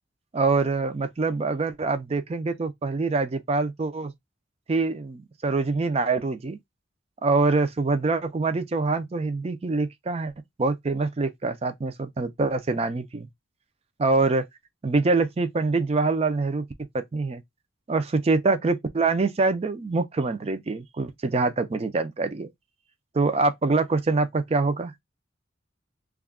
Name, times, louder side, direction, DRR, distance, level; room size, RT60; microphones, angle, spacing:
voice 1, 0.3-4.1 4.7-6.6 7.2-10.3 10.6-13.3 14.0-14.4 14.8-16.7 16.9-17.4 17.9-22.5 23.1-24.9, right 3 dB, 30° right, 0.4 m, -25 dB
2.3 x 2.2 x 3.4 m
head